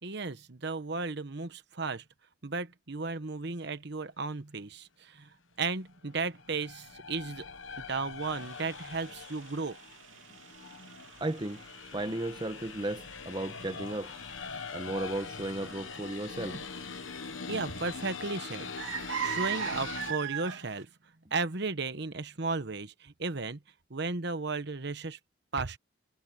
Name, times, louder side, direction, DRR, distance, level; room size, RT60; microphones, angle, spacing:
voice 1, 0.0-2.0 2.4-5.3 5.6-7.5 7.8-9.8 17.5-18.7 19.2-20.9 21.3-23.6 23.9-25.2 25.5-25.8, right 4 dB, 60° right, 1.1 m, -34 dB
sound 1, 6.1-20.1, left 5 dB, 80° left, 1.0 m, -43 dB
sound 2, 8.2-20.8, right 8 dB, 85° right, 3.0 m, -42 dB
voice 2, 11.2-11.6 11.9-14.1 14.7-16.6, right 1 dB, 25° right, 0.9 m, -35 dB
head